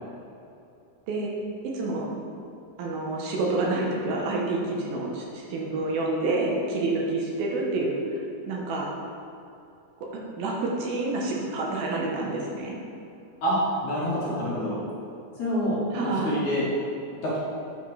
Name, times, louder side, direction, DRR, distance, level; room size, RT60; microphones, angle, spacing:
voice 1, 1.7-2.1 2.8-8.9 10.4-12.8 15.9-16.3, right 2 dB, 75° right, -2 dB, 2.6 m, -28 dB
voice 2, 13.4-14.8 15.4-16.7 17.2-17.4, equal, 60° left, -8 dB, 2.2 m, -27 dB
9.2 x 6.4 x 3.2 m, 2.7 s
omnidirectional pair, 4.6 m